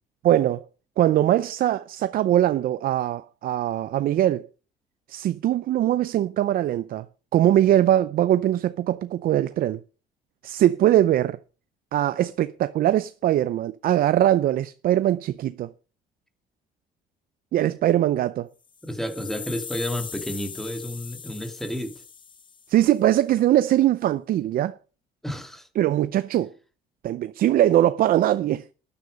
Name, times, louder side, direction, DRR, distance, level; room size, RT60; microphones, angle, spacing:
voice 1, 0.2-0.6 1.0-4.5 5.1-7.1 7.3-9.8 10.4-11.4 11.9-15.7 17.5-18.5 22.7-24.8 25.8-26.5 27.0-28.6, right 12 dB, 60° right, 0.6 m, -21 dB
sound 1, 18.6-22.8, left 6 dB, 30° left, 0.7 m, -40 dB
voice 2, 18.8-22.0 25.2-25.7, equal, ahead, 2.4 m, -31 dB
13.0 x 10.0 x 5.2 m
cardioid pair, 110°, 17 cm